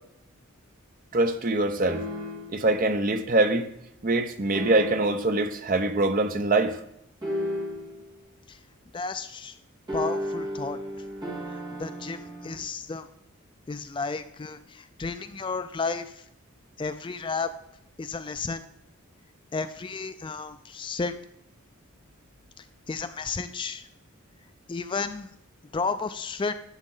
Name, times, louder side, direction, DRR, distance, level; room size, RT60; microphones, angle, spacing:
voice 1, 1.1-2.0 2.5-3.7 4.0-6.8, right 2 dB, 40° right, 0.7 m, -24 dB
sound 1, 1.9-2.7 4.5-5.4 7.2-8.1 9.9-12.6, left 1 dB, 20° right, 2.5 m, -33 dB
voice 2, 8.9-9.6 9.9-10.8 11.5-13.1 13.7-16.2 16.8-17.5 18.0-18.6 19.5-21.1 22.6-23.9 24.7-25.3 25.7-26.5, left 4 dB, 20° left, 0.3 m, -32 dB
11.5 x 7.2 x 3.8 m
head